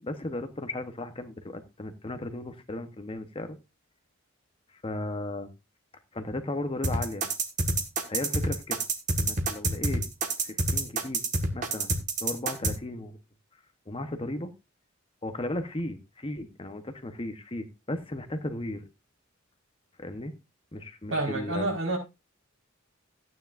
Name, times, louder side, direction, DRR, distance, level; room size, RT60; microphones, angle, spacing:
voice 1, 0.0-3.6 4.8-5.5 6.1-7.3 8.1-8.8 9.2-10.0 10.4-11.2 11.5-11.9 12.2-13.2 13.9-14.5 15.2-18.9 20.0-20.3 20.7-21.7, left 1 dB, 25° left, 1.0 m, -35 dB
sound 1, 6.8-12.7, right 3 dB, 35° right, 1.6 m, -27 dB
voice 2, 21.1-22.0, right 2 dB, 75° right, 4.6 m, -28 dB
14.5 x 9.4 x 2.5 m
head